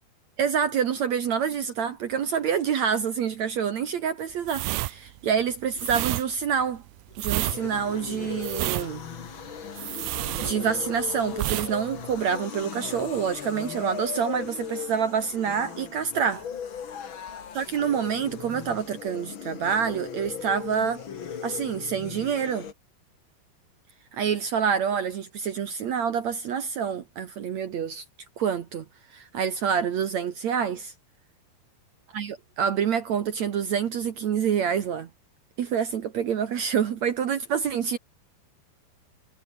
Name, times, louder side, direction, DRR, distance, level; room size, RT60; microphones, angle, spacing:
voice 1, 0.4-6.8 7.2-9.0 10.4-16.5 17.5-21.0 21.4-22.7 24.1-28.0 28.4-28.8 29.1-30.9 32.1-35.1 35.6-38.0, right 7 dB, 70° right, 1.7 m, -27 dB
sound 1, 4.4-11.0 11.3-11.7 12.0-12.2, right 20 dB, 90° right, 2.2 m, -30 dB
sound 2, 7.1-22.7, left 7 dB, 65° left, 1.2 m, -38 dB
omnidirectional pair, 5.4 m